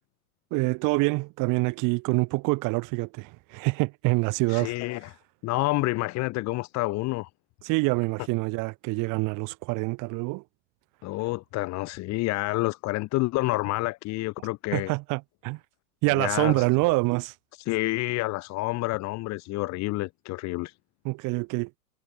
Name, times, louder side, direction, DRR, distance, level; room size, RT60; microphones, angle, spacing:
voice 1, 0.5-4.7 7.6-10.4 14.7-15.6 16.0-17.3 21.0-21.8, right 26 dB, 40° right, 6.8 m, -26 dB
voice 2, 4.5-5.2 5.4-7.3 11.0-14.9 16.1-16.7 17.6-20.8, left 20 dB, 35° left, 3.0 m, -28 dB
hypercardioid pair, 130°, 47 cm